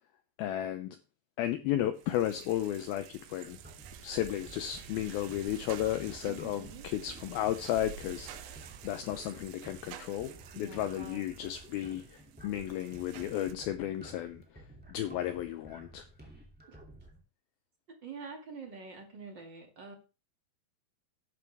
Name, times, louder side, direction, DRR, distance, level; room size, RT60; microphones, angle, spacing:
voice 1, 0.4-1.0 1.4-3.6 4.0-14.6 14.9-16.1, left 12 dB, 85° left, 2.1 m, -34 dB
sound 1, 2.0-13.5, right 11 dB, 90° right, 3.1 m, -50 dB
sound 2, 3.4-17.2, right 1 dB, 10° right, 0.4 m, -53 dB
voice 2, 6.2-6.9 10.5-11.2 16.7-16.8 18.0-19.9, right 4 dB, 35° right, 1.9 m, -46 dB
12.0 x 10.5 x 3.4 m
omnidirectional pair, 5.1 m